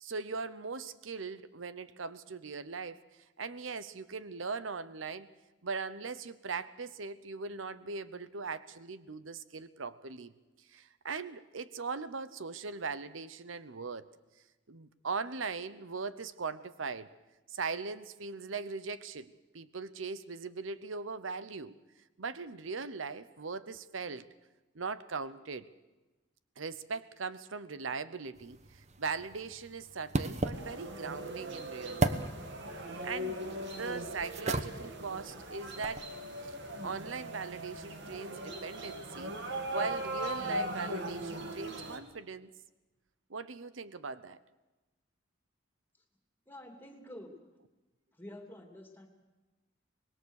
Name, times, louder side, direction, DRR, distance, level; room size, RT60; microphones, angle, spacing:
voice 1, 0.0-3.0 3.4-5.3 5.6-10.3 10.7-14.1 14.7-17.1 17.5-21.7 22.2-24.3 24.7-25.7 26.6-32.3 33.0-36.1 36.4-36.5 36.8-39.4 39.7-42.5 43.3-44.4, right 4 dB, 85° right, 14 dB, 0.9 m, -40 dB
sound 1, 28.4-36.1, right 2 dB, 35° right, 1.1 m, -38 dB
sound 2, 30.5-42.0, right 1 dB, 65° right, 2.6 m, -39 dB
voice 2, 46.5-47.3 48.2-49.1, left 1 dB, 10° left, 3 dB, 3.0 m, -48 dB
25.0 x 20.0 x 6.5 m, 1.1 s
head